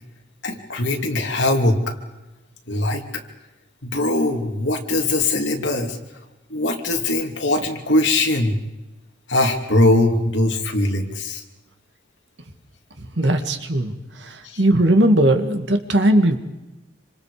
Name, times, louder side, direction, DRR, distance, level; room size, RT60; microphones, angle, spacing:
voice 1, 0.4-2.0 2.7-3.2 3.8-6.0 6.5-8.6 9.3-11.4 14.4-14.6, left 2 dB, 70° left, 2 dB, 2.9 m, -21 dB
voice 2, 13.2-13.9 14.2-16.4, right 1 dB, 65° right, 6 dB, 2.1 m, -18 dB
27.0 x 26.0 x 5.1 m, 1.0 s
head